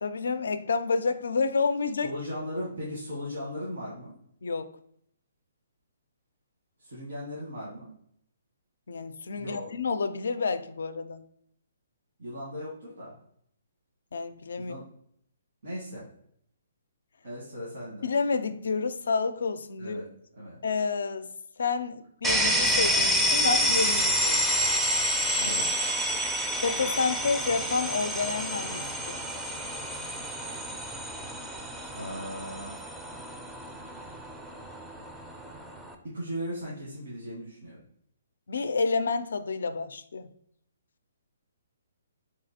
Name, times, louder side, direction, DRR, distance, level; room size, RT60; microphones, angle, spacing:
voice 1, 0.0-2.1 4.4-4.7 8.9-11.2 14.1-14.8 18.0-20.0 20.6-21.3 21.6-24.5 26.6-29.2 38.5-40.3, left 4 dB, 75° left, 11 dB, 0.3 m, -29 dB
voice 2, 2.0-4.1 6.8-7.9 9.3-9.7 12.2-13.2 14.6-14.8 15.6-16.1 17.2-18.1 19.8-20.1 20.3-20.6 25.4-25.8 31.9-32.7 36.1-37.8, equal, 80° right, -6 dB, 1.4 m, -37 dB
sound 1, 22.2-35.9, equal, 5° right, 0.4 m, -29 dB
3.6 x 3.2 x 2.7 m, 0.69 s
hypercardioid pair, 150°, 0 cm